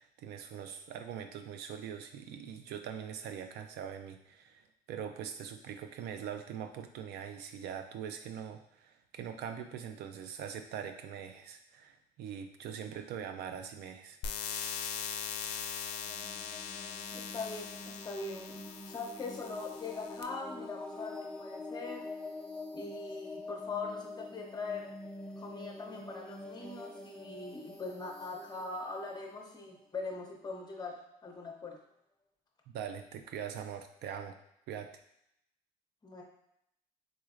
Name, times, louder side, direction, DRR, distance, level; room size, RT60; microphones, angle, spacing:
voice 1, 0.0-14.2 32.7-34.4 34.7-34.9, right 8 dB, 75° right, 7 dB, 0.4 m, -42 dB
sound 1, 14.2-20.2, left 7 dB, 80° left, 0.4 m, -41 dB
sound 2, 15.9-30.5, left 2 dB, 5° left, 0.4 m, -46 dB
voice 2, 17.1-22.1 22.7-24.9 25.4-31.8 36.0-36.2, left 3 dB, 25° left, 1 dB, 0.7 m, -42 dB
3.7 x 3.1 x 2.4 m, 0.77 s
cardioid pair, 110°, 17 cm